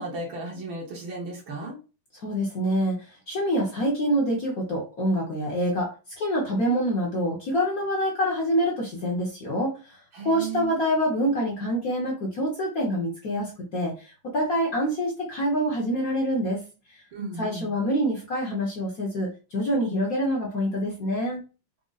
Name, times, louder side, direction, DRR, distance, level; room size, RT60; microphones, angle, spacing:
voice 1, 0.0-1.8 10.1-10.8 17.1-17.7, right 3 dB, 65° right, -3 dB, 1.9 m, -35 dB
voice 2, 2.2-5.9 6.2-10.0 10.2-16.6 17.4-21.4, equal, 55° left, -2 dB, 1.2 m, -26 dB
5.0 x 2.1 x 3.9 m, 0.33 s
omnidirectional pair, 2.4 m